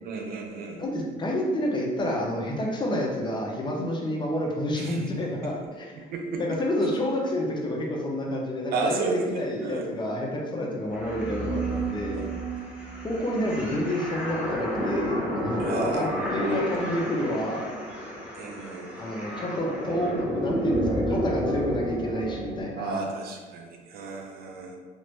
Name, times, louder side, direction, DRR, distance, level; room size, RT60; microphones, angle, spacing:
voice 1, 0.0-0.8 4.8-5.0 6.0-6.4 8.7-9.9 12.1-12.3 15.6-16.1 18.3-18.8 22.8-24.8, right 4 dB, 65° right, 2 dB, 0.5 m, -33 dB
voice 2, 0.7-6.0 6.4-12.3 13.0-17.7 19.0-23.1, left 1 dB, 25° left, -1 dB, 0.6 m, -29 dB
sound 1, 10.9-22.6, equal, 5° right, 0.9 m, -31 dB
3.2 x 2.5 x 3.1 m, 1.4 s
cardioid pair, 110°, 17 cm